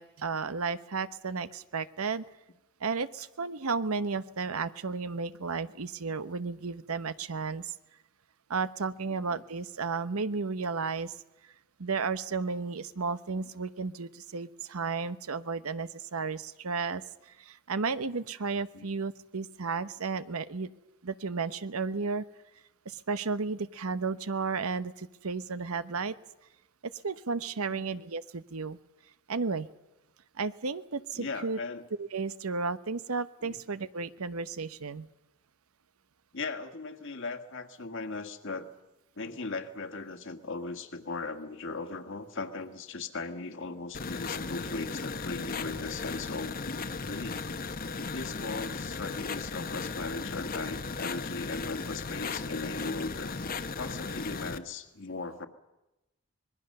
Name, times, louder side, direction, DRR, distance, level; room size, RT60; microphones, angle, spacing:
voice 1, 0.0-2.2 2.8-7.7 8.5-11.2 11.8-20.7 21.0-22.2 22.8-26.1 26.8-28.8 29.3-29.7 30.4-31.6 32.0-35.1, right 4 dB, 85° right, 14 dB, 0.9 m, -33 dB
voice 2, 9.1-9.4 18.7-18.9 27.7-27.8 31.1-31.8 33.4-33.6 36.3-38.7 39.2-47.4 48.1-53.4 53.7-55.5, left 3 dB, 60° left, 7 dB, 1.8 m, -38 dB
sound 1, 43.9-54.6, left 4 dB, 45° left, 1.0 m, -36 dB
25.5 x 21.0 x 6.6 m, 0.98 s
head